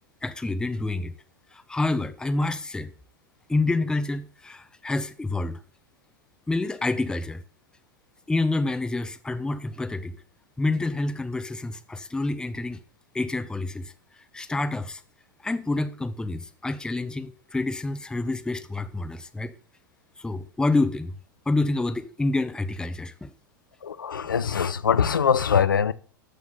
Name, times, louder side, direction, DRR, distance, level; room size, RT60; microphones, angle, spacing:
voice 1, 0.2-1.1 1.5-2.9 3.5-5.6 6.5-7.4 8.3-10.2 10.6-12.8 13.1-15.0 15.4-19.5 20.2-21.2 21.5-23.3, left 2 dB, 5° left, 0.8 m, -28 dB
voice 2, 23.8-25.9, left 7 dB, 80° left, 0.6 m, -22 dB
13.0 x 7.2 x 3.9 m
figure-of-eight pair, 90°, 11 cm